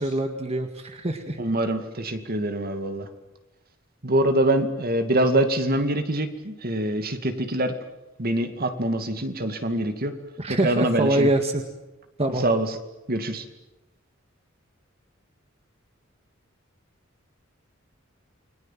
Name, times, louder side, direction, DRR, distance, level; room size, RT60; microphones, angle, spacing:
voice 1, 0.0-1.4 10.4-11.6 12.2-12.4, right 1 dB, 30° right, 5 dB, 1.9 m, -24 dB
voice 2, 1.4-3.1 4.0-7.7 8.2-10.1 10.5-11.3 12.4-12.7 13.1-13.4, right 1 dB, 50° right, 8 dB, 2.4 m, -24 dB
29.5 x 22.5 x 7.5 m, 1.0 s
head